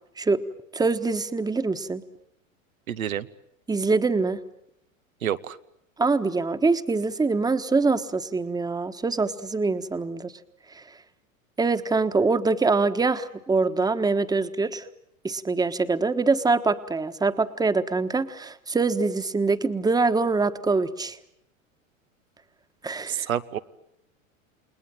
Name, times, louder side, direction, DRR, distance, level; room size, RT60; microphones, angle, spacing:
voice 1, 0.7-2.0 3.7-4.4 6.0-10.3 10.7-10.8 11.6-14.8 15.2-21.2 22.8-23.3, right 3 dB, 10° right, 10 dB, 1.3 m, -24 dB
voice 2, 2.9-3.3 5.2-5.6 23.1-23.6, right 10 dB, 85° right, 11 dB, 1.1 m, -28 dB
29.5 x 20.0 x 9.1 m, 0.80 s
hypercardioid pair, 105°, 40 cm